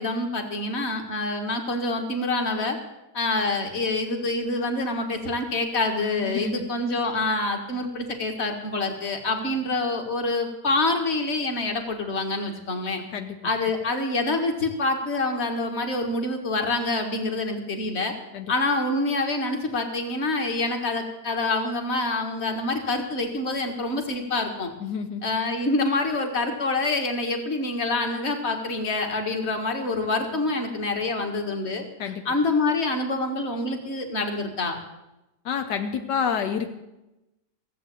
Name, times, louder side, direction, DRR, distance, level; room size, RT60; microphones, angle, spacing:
voice 1, 0.0-2.8 3.1-13.0 13.4-18.1 18.5-24.7 25.2-31.8 32.3-34.8, left 2 dB, 40° left, 4 dB, 1.9 m, -26 dB
voice 2, 6.2-6.7 13.1-13.4 18.3-18.5 24.8-25.2 32.0-32.2 35.4-36.7, left 7 dB, 80° left, 6 dB, 1.5 m, -28 dB
16.0 x 8.0 x 8.4 m, 0.96 s
omnidirectional pair, 1.8 m